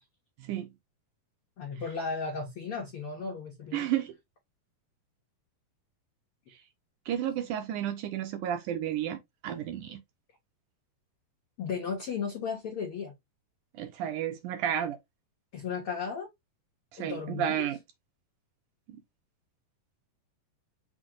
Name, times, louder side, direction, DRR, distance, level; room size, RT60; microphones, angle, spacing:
voice 1, 1.6-3.9 11.6-13.1 15.5-16.3 17.0-17.6, left 5 dB, 80° left, 1.2 m, -35 dB
voice 2, 3.7-4.1 7.1-10.0 13.7-15.0 16.9-17.8 18.9-19.0, right 10 dB, 75° right, 1.9 m, -32 dB
5.9 x 2.1 x 3.7 m
omnidirectional pair, 4.0 m